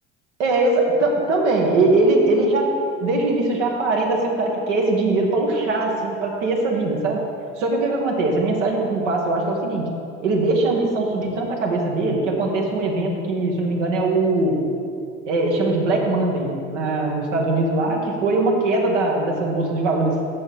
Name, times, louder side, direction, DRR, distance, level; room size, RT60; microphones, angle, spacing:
voice 1, 0.4-2.7 3.0-7.2 7.6-9.9 10.2-14.6 15.3-20.1, right 2 dB, 85° right, 0 dB, 1.4 m, -21 dB
6.8 x 6.3 x 5.8 m, 2.5 s
hypercardioid pair, 75°, 35 cm